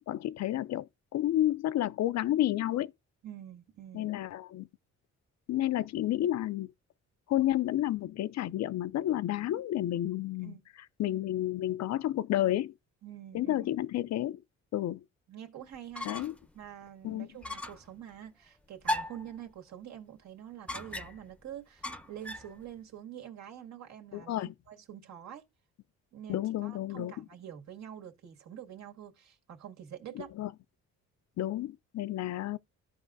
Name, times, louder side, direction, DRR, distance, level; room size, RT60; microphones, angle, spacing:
voice 1, 0.1-0.9 1.1-2.9 3.9-4.7 5.5-6.7 7.3-10.5 11.0-12.7 13.3-14.4 14.7-15.0 16.0-16.3 17.0-17.3 24.1-24.5 26.3-27.1 30.2-30.5 31.4-32.6, left 13 dB, 60° left, 0.5 m, -30 dB
voice 2, 3.2-4.1 10.4-10.6 13.0-13.7 15.3-16.3 16.5-24.3 24.7-25.4 26.1-30.3, right 10 dB, 65° right, 2.0 m, -46 dB
sound 1, 15.7-16.5 16.8-16.9 17.4-17.9 18.8-19.3 20.7-21.3 21.8-22.5, left 1 dB, 5° left, 0.7 m, -36 dB
14.5 x 4.9 x 2.6 m
cardioid pair, 90°, 30 cm